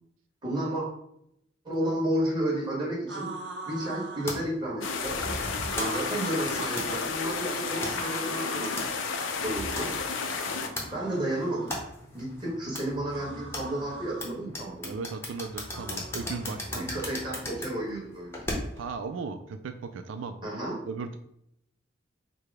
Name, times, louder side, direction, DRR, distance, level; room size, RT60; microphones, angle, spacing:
voice 1, 0.4-0.9 1.6-3.3 3.7-5.2 5.7-8.7 9.4-9.9 10.9-11.7 12.1-14.9 16.7-18.4 20.4-20.8, right 1 dB, 25° right, -4 dB, 1.6 m, -32 dB
sound 1, 3.1-4.5 5.6-6.8 7.9-8.9 10.3-11.7 13.1-14.3 15.7-17.0, right 2 dB, 65° right, 0.9 m, -42 dB
sound 2, 4.3-18.9, left 1 dB, 15° left, 0.9 m, -39 dB
sound 3, 4.8-10.7, left 4 dB, 80° left, 0.6 m, -32 dB
voice 2, 14.8-17.0 18.8-20.4 20.9-21.2, right 4 dB, 85° right, 8 dB, 0.3 m, -36 dB
4.8 x 2.2 x 4.7 m, 0.77 s
head